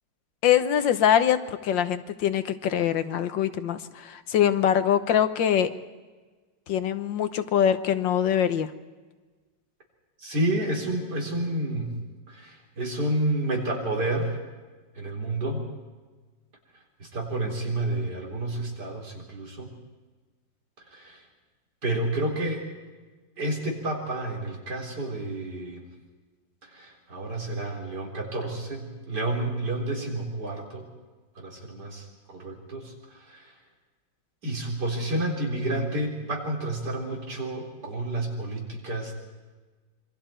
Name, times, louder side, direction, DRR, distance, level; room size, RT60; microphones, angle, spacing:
voice 1, 0.4-5.7 6.7-8.7, left 9 dB, 90° left, 10 dB, 1.7 m, -23 dB
voice 2, 10.2-11.9 12.3-14.4 14.9-15.7 17.0-19.7 20.9-21.2 21.8-22.7 23.4-25.9 26.6-30.8 31.4-33.5 34.4-39.1, right 1 dB, 65° right, -1 dB, 4.7 m, -30 dB
27.0 x 23.5 x 4.5 m, 1.3 s
omnidirectional pair, 1.9 m